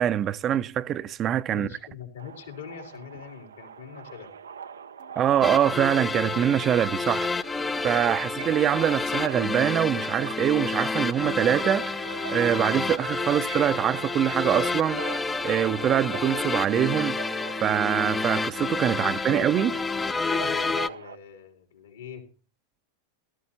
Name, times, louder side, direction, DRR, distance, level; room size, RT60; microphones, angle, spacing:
voice 1, 0.0-1.7 5.2-7.3 7.8-17.2 17.6-19.7, right 10 dB, 35° right, 0.6 m, -24 dB
voice 2, 1.5-4.4 18.9-19.8 20.3-22.3, left 8 dB, 75° left, 3.9 m, -42 dB
Subway metro underground, 2.2-21.2, right 7 dB, 80° right, 0.6 m, -43 dB
sound 1, 2.9-3.2 5.0-5.3 6.6-6.9 8.5-8.7 9.8-10.3 11.1-11.6 12.6-13.1 14.0-14.5 15.5-16.1 16.8-17.6, right 12 dB, 65° right, 1.1 m, -47 dB
sound 2, 5.4-20.9, left 4 dB, 15° left, 0.6 m, -29 dB
17.5 x 13.5 x 2.7 m
hypercardioid pair, 95°, 0 cm